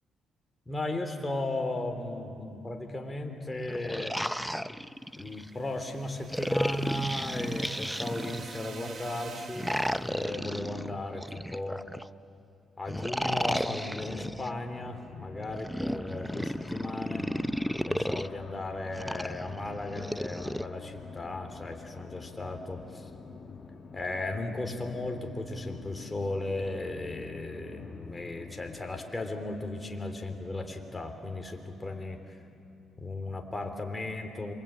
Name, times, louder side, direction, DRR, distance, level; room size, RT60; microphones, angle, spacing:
voice 1, 0.7-4.2 5.2-9.7 10.0-11.8 12.8-17.3 17.9-23.1 23.9-32.2 33.0-34.5, left 2 dB, 20° left, 4 dB, 3.5 m, -36 dB
sound 1, 3.6-5.5 6.3-8.7 9.5-12.1 12.9-14.5 15.5-18.3 19.0-20.6, equal, ahead, 0.6 m, -33 dB
sound 2, 5.3-10.2, right 5 dB, 50° right, 1.7 m, -47 dB
sound 3, 13.2-29.0, left 5 dB, 45° left, 2.3 m, -48 dB
27.0 x 24.5 x 8.9 m, 2.7 s
cardioid pair, 90°, 0 cm